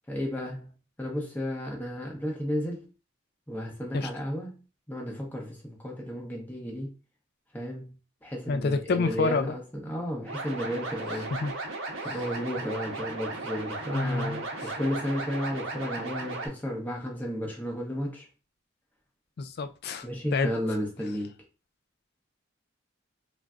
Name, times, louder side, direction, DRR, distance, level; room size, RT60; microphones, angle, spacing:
voice 1, 0.1-0.7 1.0-2.9 3.5-4.6 4.9-6.9 7.5-7.9 8.2-11.3 12.0-18.3 20.0-21.3, equal, 10° left, 0.7 m, -33 dB
voice 2, 8.5-9.5 11.3-11.5 12.0-12.2 13.9-14.4 19.4-20.5, left 4 dB, 50° left, 0.3 m, -28 dB
sound 1, 10.3-16.5, right 2 dB, 80° right, 0.8 m, -36 dB
3.2 x 2.5 x 2.4 m
head